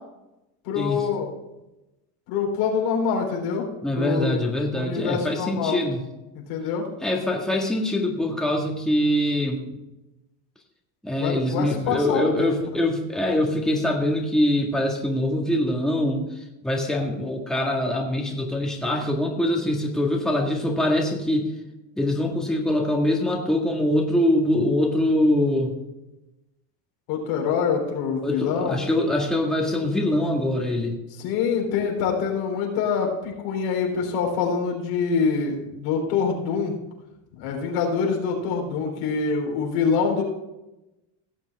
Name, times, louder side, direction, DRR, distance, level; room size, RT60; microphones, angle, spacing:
voice 1, 0.6-1.3 2.3-3.6 4.0-4.4 4.7-5.8 6.3-6.9 11.1-12.8 27.1-28.8 31.2-36.8 37.4-40.2, left 6 dB, 85° left, 0 dB, 3.8 m, -25 dB
voice 2, 3.8-6.0 7.0-9.6 11.0-16.3 16.6-21.5 22.0-25.8 28.2-30.9, left 1 dB, ahead, 0 dB, 1.7 m, -23 dB
17.0 x 7.3 x 3.5 m, 0.96 s
cardioid pair, 120°, 45 cm